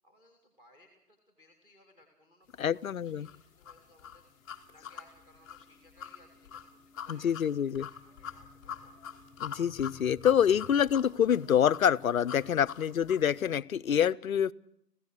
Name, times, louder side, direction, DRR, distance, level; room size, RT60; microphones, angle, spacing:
voice 1, 0.0-9.0 10.5-10.7, left 1 dB, 10° right, 4 dB, 2.5 m, -63 dB
voice 2, 2.6-3.3 7.1-7.9 9.4-14.5, left 9 dB, 60° left, 15 dB, 0.7 m, -26 dB
sound 1, 3.2-13.3, left 7 dB, 15° left, 1.0 m, -44 dB
sound 2, 3.7-9.5, left 1 dB, 45° right, 5.4 m, -64 dB
26.5 x 16.0 x 6.6 m, 0.77 s
figure-of-eight pair, 145°, 47 cm